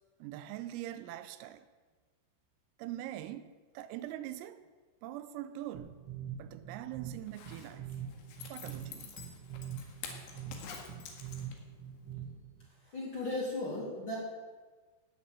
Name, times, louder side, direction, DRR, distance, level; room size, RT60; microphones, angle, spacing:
voice 1, 0.2-1.6 2.8-4.6 5.0-6.0 6.4-7.9 8.5-9.2, right 13 dB, 85° right, 3.4 m, -43 dB
sound 1, 5.7-12.6, right 8 dB, 40° right, 2.0 m, -45 dB
Zipper (clothing), 7.2-11.8 12.1-12.2, left 6 dB, 65° left, 3.5 m, -48 dB
voice 2, 12.7-14.1, left 2 dB, 30° left, 3.3 m, -37 dB
16.5 x 7.1 x 8.9 m
omnidirectional pair, 5.9 m